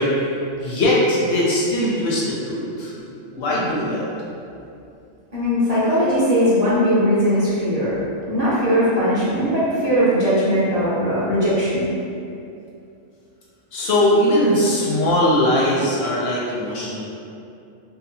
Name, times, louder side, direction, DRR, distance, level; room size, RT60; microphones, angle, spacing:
voice 1, 0.0-4.1 13.7-17.0, left 1 dB, 65° left, -6 dB, 0.7 m, -20 dB
voice 2, 5.3-11.9, equal, 45° right, -11 dB, 0.5 m, -19 dB
2.7 x 2.1 x 2.7 m, 2.6 s
omnidirectional pair, 1.4 m